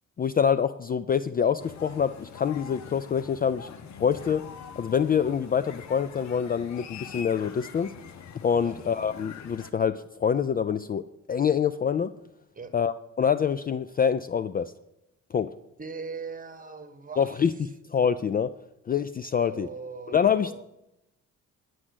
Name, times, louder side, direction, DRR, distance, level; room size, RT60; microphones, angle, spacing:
voice 1, 0.2-3.7 4.0-4.5 4.8-7.9 8.4-11.0 11.3-12.1 12.7-14.7 15.3-15.5 17.2-17.5 17.9-18.5 18.9-19.7 20.1-20.6, left 7 dB, 30° left, 14 dB, 0.4 m, -25 dB
sound 1, 1.6-9.7, left 7 dB, 65° left, 0.9 m, -44 dB
voice 2, 15.8-17.4 19.3-20.6, right 5 dB, 25° right, 10 dB, 1.3 m, -40 dB
9.8 x 6.2 x 8.0 m, 0.85 s
cardioid pair, 90°, 30 cm